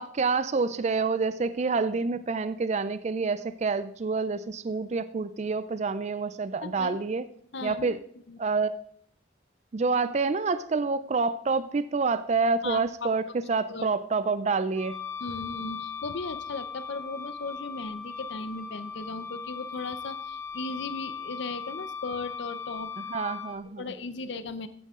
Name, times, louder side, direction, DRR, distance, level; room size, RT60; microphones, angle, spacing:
voice 1, 0.0-7.2 7.6-8.0 8.4-8.7 9.7-13.2 13.5-15.0 23.0-23.8, right 4 dB, 35° right, 14 dB, 0.4 m, -27 dB
voice 2, 6.6-7.0 7.5-8.0 8.3-8.4 12.6-13.1 13.7-13.9 15.2-23.2 23.8-24.7, left 3 dB, 65° left, 13 dB, 0.8 m, -37 dB
Wind instrument woodwind instrument, 14.7-23.5, left 6 dB, 15° left, 2.1 m, -38 dB
14.5 x 9.5 x 3.7 m, 0.65 s
head